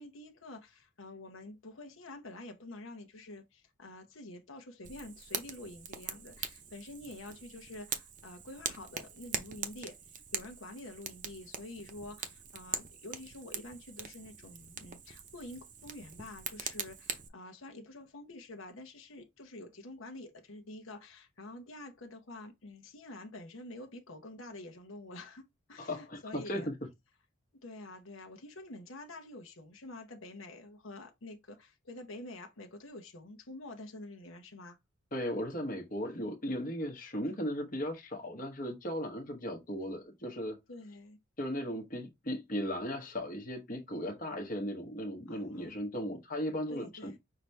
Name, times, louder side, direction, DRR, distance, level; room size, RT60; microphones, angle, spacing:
voice 1, 0.0-25.4 25.7-26.7 27.5-34.8 40.7-41.2 45.3-45.8 46.7-47.2, left 2 dB, 75° left, 0.9 m, -48 dB
Fire, 4.8-17.3, right 7 dB, 40° right, 0.7 m, -42 dB
voice 2, 25.8-26.7 35.1-40.6 41.4-47.1, equal, 40° left, 1.0 m, -37 dB
5.8 x 2.7 x 3.3 m
head